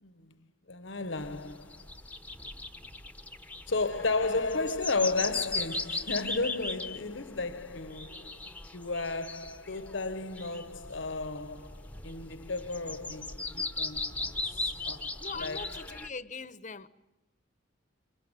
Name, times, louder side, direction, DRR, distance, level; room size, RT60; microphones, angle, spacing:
voice 1, 0.0-2.0 3.7-15.9, left 3 dB, 75° left, 1.3 m, -34 dB
sound 1, 1.2-16.1, left 3 dB, 10° left, 1.1 m, -38 dB
voice 2, 15.2-16.9, left 4 dB, 40° left, 1.1 m, -42 dB
26.5 x 24.5 x 9.0 m
head